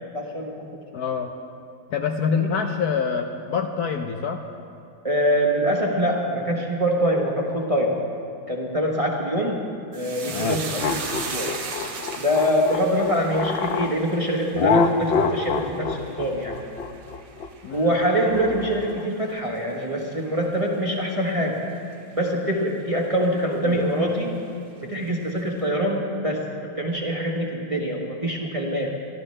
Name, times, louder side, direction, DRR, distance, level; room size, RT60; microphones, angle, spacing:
voice 1, 0.0-0.5 2.3-2.5 5.0-8.0 8.5-9.7 9.9-11.5 12.2-16.6 17.7-21.6 22.1-24.4 24.8-28.9, equal, 20° right, -2 dB, 1.1 m, -24 dB
voice 2, 0.9-1.3 1.9-4.4 10.8-11.0 17.6-17.9 23.7-23.8, left 6 dB, 65° left, 4 dB, 1.1 m, -26 dB
sound 1, 9.9-18.5 18.8-19.5 19.8-20.0, right 4 dB, 75° right, 2.0 m, -37 dB
sound 2, 10.3-13.9 14.5-19.1, left 5 dB, 85° left, 0.5 m, -26 dB
23.0 x 13.5 x 3.3 m, 2.5 s
omnidirectional pair, 2.0 m